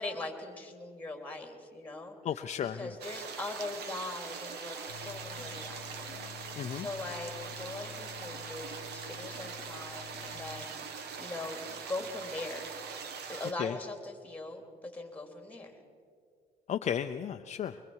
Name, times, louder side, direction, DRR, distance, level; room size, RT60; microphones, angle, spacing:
voice 1, 0.0-2.2 2.6-6.3 6.8-13.0 13.3-15.8, left 2 dB, 10° left, 4 dB, 3.0 m, -41 dB
voice 2, 2.2-2.9 6.6-6.9 13.6-13.8 16.7-17.8, left 9 dB, 45° left, 7 dB, 0.6 m, -34 dB
sound 1, 3.0-13.5, right 6 dB, 75° right, 1.6 m, -42 dB
sound 2, 4.9-10.7, left 8 dB, 90° left, 0.6 m, -50 dB
24.5 x 23.0 x 4.7 m, 2.2 s
cardioid pair, 110°, 17 cm